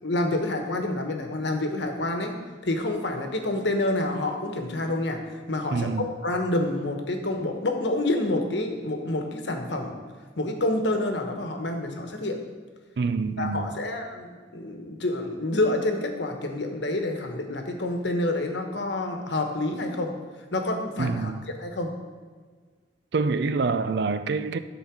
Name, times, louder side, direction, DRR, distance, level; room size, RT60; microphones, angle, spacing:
voice 1, 0.0-2.3 2.6-5.2 5.5-10.0 10.4-12.4 13.4-20.1 20.5-21.3 21.6-21.9, left 2 dB, 70° left, 1.1 m, -28 dB
voice 2, 5.7-6.1 13.0-13.7 21.0-21.4 23.1-24.6, right 4 dB, 65° right, 0.4 m, -26 dB
11.5 x 4.0 x 6.1 m
head